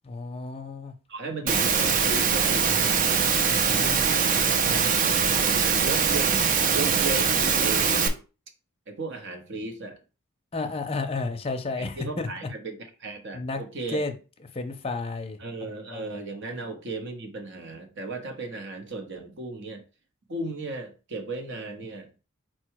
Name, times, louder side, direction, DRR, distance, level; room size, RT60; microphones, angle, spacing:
voice 1, 0.0-0.9 3.7-4.9 10.5-12.3 13.3-13.6 13.9-14.1 14.5-15.4 15.9-16.0, left 3 dB, 25° left, 0.6 m, -32 dB
voice 2, 1.1-3.0 5.2-8.2 8.9-10.0 11.8-14.0 15.4-19.8 20.3-22.1, right 3 dB, 55° right, 0.9 m, -35 dB
Engine / Mechanisms, 1.5-8.1, right 6 dB, 40° right, 0.5 m, -22 dB
4.4 x 2.2 x 4.6 m
head